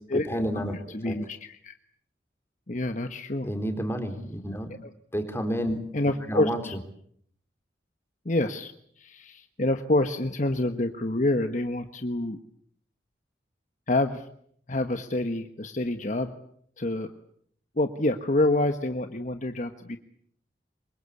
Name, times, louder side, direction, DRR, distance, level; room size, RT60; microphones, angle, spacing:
voice 1, 0.1-0.8 1.0-1.2 3.4-4.7 5.1-5.8 6.3-6.6, equal, 15° left, 6 dB, 3.9 m, -30 dB
voice 2, 0.9-1.7 2.7-3.5 4.8-4.9 5.9-6.7 8.2-12.4 13.9-14.2 14.7-16.3 16.8-17.1 17.8-20.0, left 2 dB, 45° left, 8 dB, 1.3 m, -27 dB
27.5 x 23.5 x 8.5 m, 0.67 s
head